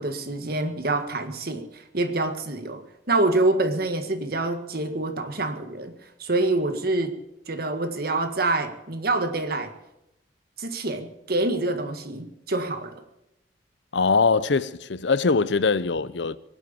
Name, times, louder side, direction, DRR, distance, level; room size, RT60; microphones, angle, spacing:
voice 1, 0.0-7.2 7.5-9.7 10.6-13.0, right 2 dB, 55° right, 1.7 m, -26 dB
voice 2, 13.9-16.4, left 4 dB, 75° left, 0.7 m, -22 dB
24.0 x 8.1 x 7.1 m
head